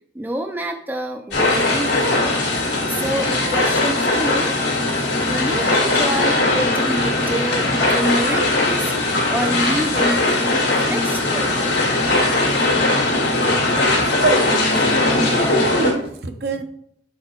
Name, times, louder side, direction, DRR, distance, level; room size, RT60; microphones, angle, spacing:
voice 1, 0.1-2.4 2.9-4.6 4.9-8.9 9.3-11.6, right 1 dB, 10° right, 4 dB, 0.4 m, -27 dB
sound 1, 1.3-15.9, left 2 dB, 70° left, 1.6 m, -19 dB
voice 2, 13.1-14.7 15.1-16.6, right 3 dB, 60° right, 6 dB, 0.8 m, -26 dB
6.7 x 4.7 x 4.5 m, 0.69 s
head